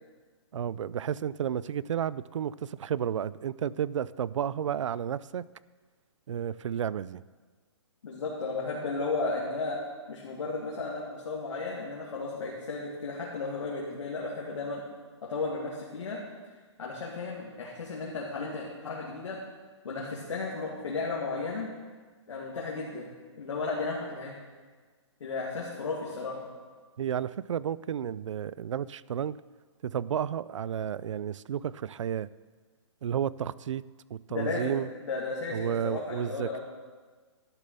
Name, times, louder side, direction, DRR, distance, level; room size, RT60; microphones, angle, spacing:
voice 1, 0.5-5.5 6.3-7.2 27.0-29.4 29.8-32.3 33.0-33.9 34.1-34.9 35.5-36.6, right 9 dB, 85° right, 20 dB, 0.4 m, -32 dB
voice 2, 8.0-9.8 10.1-14.8 15.2-16.2 16.8-19.4 19.8-21.7 22.3-23.1 23.4-24.3 25.2-26.5 34.3-36.6, left 3 dB, 80° left, -4 dB, 2.4 m, -34 dB
12.0 x 6.8 x 6.8 m, 1.4 s
hypercardioid pair, 170°, 15 cm